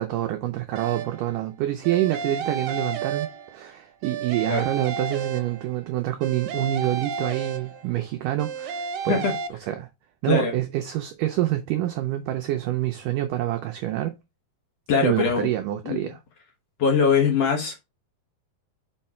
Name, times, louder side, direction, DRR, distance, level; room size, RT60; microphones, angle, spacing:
voice 1, 0.0-9.2 9.6-9.9 10.2-14.2 15.0-16.2, right 14 dB, 85° right, 1.8 m, -27 dB
sound 1, 0.8-1.3 1.8-3.7 4.0-5.8 6.2-8.0 8.4-9.5, right 6 dB, 70° right, 2.4 m, -32 dB
voice 2, 14.9-15.5 15.8-16.1 16.8-17.8, left 5 dB, 60° left, 1.7 m, -22 dB
5.7 x 4.9 x 4.3 m
omnidirectional pair, 4.5 m